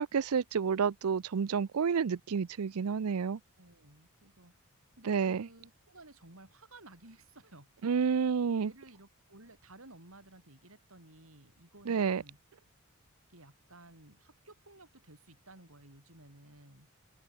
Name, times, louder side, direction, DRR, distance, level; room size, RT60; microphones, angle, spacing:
voice 1, 0.0-3.4 5.1-5.5 7.8-8.7 11.9-12.2, right 6 dB, 90° right, 0.5 m, -30 dB
voice 2, 3.6-4.5 5.0-7.7 8.6-12.4 13.3-16.9, right 2 dB, 70° right, 6.5 m, -56 dB
head